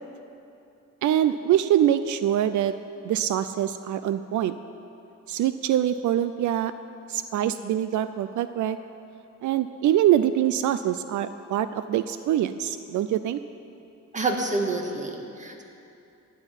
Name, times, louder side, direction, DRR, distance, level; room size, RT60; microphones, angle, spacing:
voice 1, 1.0-2.7 3.0-4.6 5.3-6.7 7.1-8.8 9.4-13.4, right 11 dB, 80° right, 12 dB, 0.5 m, -24 dB
voice 2, 14.1-15.6, right 2 dB, 25° right, 2 dB, 1.6 m, -28 dB
16.0 x 5.9 x 9.8 m, 2.8 s
cardioid pair, 120°, 29 cm